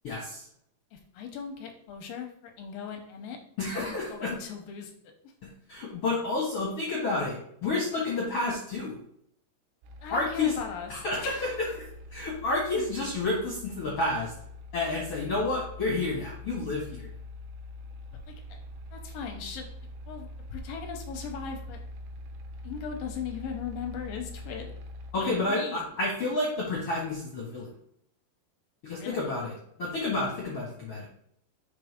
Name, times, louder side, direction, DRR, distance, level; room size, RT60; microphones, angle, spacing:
voice 1, 0.0-0.5 3.6-4.3 5.7-8.9 10.1-10.5 10.9-11.7 12.1-14.3 14.7-17.1 25.1-27.7 28.8-29.5 29.8-31.1, left 2 dB, 55° left, -4 dB, 1.8 m, -30 dB
voice 2, 0.9-3.4 3.8-4.9 5.2-5.3 10.0-11.7 18.3-18.6 18.9-19.7 20.1-21.8 22.6-24.7 25.2-25.8 29.0-29.3, left 6 dB, 75° left, 3 dB, 2.3 m, -38 dB
sound 1, 9.8-25.1, left 1 dB, 80° right, 2.6 m, -44 dB
6.0 x 4.8 x 5.1 m, 0.69 s
omnidirectional pair, 4.7 m